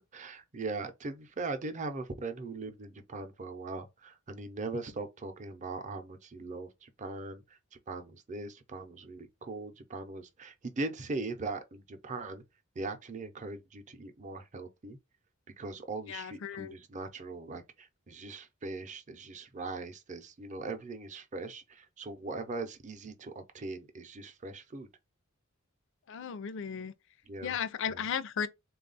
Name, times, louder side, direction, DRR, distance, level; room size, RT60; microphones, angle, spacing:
voice 1, 0.1-7.6 7.9-12.4 12.8-15.0 15.6-24.9 27.2-27.6 27.9-28.0, right 3 dB, 35° right, 0.6 m, -40 dB
voice 2, 16.1-16.7 26.1-26.9 27.4-28.5, left 7 dB, 65° left, 0.4 m, -35 dB
3.5 x 2.3 x 3.9 m
head